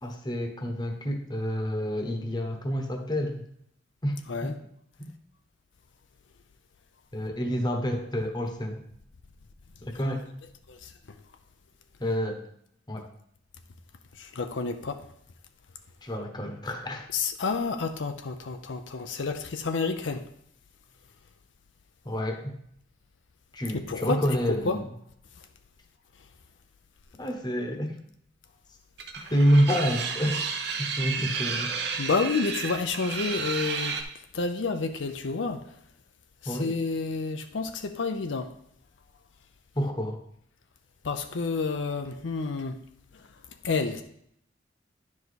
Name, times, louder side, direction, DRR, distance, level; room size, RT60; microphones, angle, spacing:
voice 1, 0.0-3.5 4.0-4.5 7.1-8.8 9.8-10.2 12.0-12.4 12.9-13.1 16.0-17.1 22.0-22.5 23.5-24.9 27.2-28.0 29.3-30.5 30.8-31.7 36.5-36.7 39.7-40.2, equal, 25° left, 3 dB, 1.0 m, -28 dB
voice 2, 14.2-15.0 17.1-20.2 23.9-24.2 24.5-24.8 32.0-33.9 34.3-35.6 36.4-38.5 41.0-42.8 43.6-44.0, left 4 dB, 80° left, 7 dB, 0.6 m, -29 dB
sound 1, 29.0-34.0, right 5 dB, 60° right, 0.9 m, -32 dB
10.5 x 4.9 x 4.1 m, 0.71 s
head